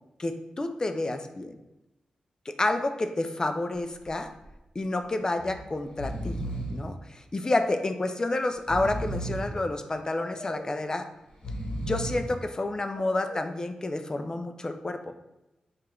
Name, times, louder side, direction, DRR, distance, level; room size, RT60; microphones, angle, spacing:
voice 1, 0.2-1.6 2.6-4.3 4.8-6.4 6.7-11.1 11.9-15.1, left 2 dB, 30° left, 8 dB, 0.4 m, -29 dB
Breathing, 3.7-4.1 4.4-4.5 5.4-5.6 5.8-6.9 7.4-8.1 8.5-9.6 10.1-10.8 11.3-12.3 12.9-13.5, right 1 dB, 45° left, 0.9 m, -35 dB
4.6 x 2.4 x 3.0 m, 0.95 s
cardioid pair, 70°, 2 cm